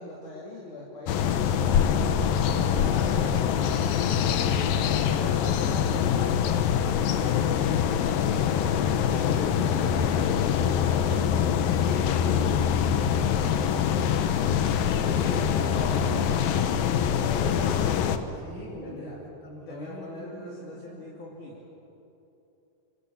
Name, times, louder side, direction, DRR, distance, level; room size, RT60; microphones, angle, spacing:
voice 1, 0.0-1.9 2.7-3.3 4.7-6.5 16.6-17.6 18.8-19.2 19.7-21.7, left 2 dB, 55° left, -5 dB, 4.7 m, -42 dB
sound 1, 1.1-18.2, left 8 dB, 75° left, 2.8 m, -24 dB
voice 2, 2.2-5.9 7.1-9.7 14.3-14.7 15.0-16.5 17.2-18.0 18.4-21.0, equal, 25° left, -3 dB, 8.3 m, -40 dB
29.5 x 26.0 x 7.3 m, 2.9 s
omnidirectional pair, 4.2 m